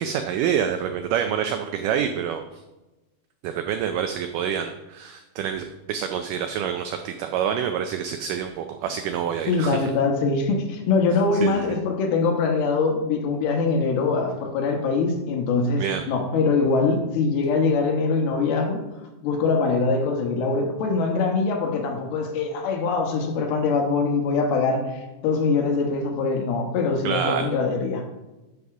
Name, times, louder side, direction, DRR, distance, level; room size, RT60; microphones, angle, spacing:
voice 1, 0.0-2.4 3.4-9.9 11.4-11.7 15.8-16.0 27.0-27.5, right 8 dB, 85° right, 7 dB, 1.8 m, -27 dB
voice 2, 9.5-18.8 19.2-28.0, left 4 dB, 80° left, 3 dB, 3.1 m, -23 dB
9.6 x 4.7 x 6.0 m, 1.1 s
omnidirectional pair, 4.4 m